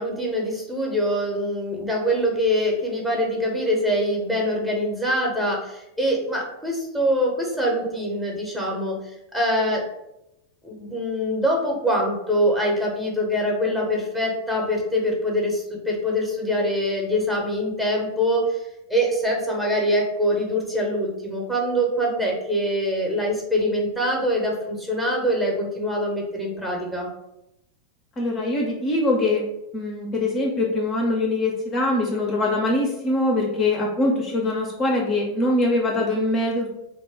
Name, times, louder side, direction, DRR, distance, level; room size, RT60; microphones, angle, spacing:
voice 1, 0.0-9.8 10.6-27.1, equal, 5° right, -2 dB, 0.7 m, -24 dB
voice 2, 28.2-29.4 29.7-36.7, left 2 dB, 25° left, -1 dB, 0.4 m, -23 dB
2.1 x 2.1 x 3.3 m, 0.87 s
figure-of-eight pair, 90°, 0 cm